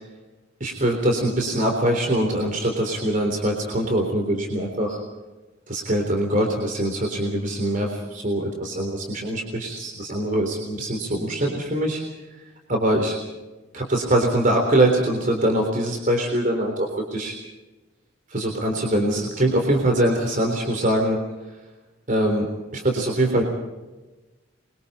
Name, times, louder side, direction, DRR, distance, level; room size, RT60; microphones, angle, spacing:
voice 1, 0.6-5.0 5.7-12.0 12.7-13.2 13.7-17.3 18.3-21.2 22.1-23.4, right 1 dB, 40° right, 2 dB, 3.7 m, -23 dB
27.5 x 23.0 x 4.3 m, 1.1 s
head